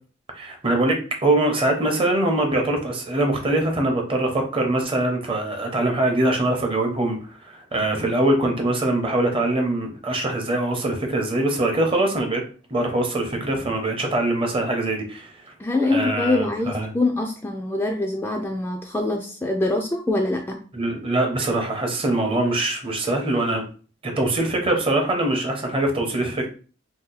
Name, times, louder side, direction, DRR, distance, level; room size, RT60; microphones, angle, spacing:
voice 1, 0.3-12.4 12.7-15.5 15.9-16.9 20.7-23.6 24.0-26.5, right 1 dB, 30° right, 0.7 m, -23 dB
voice 2, 15.6-20.6, left 2 dB, 10° left, 0.3 m, -24 dB
2.7 x 2.2 x 3.8 m
head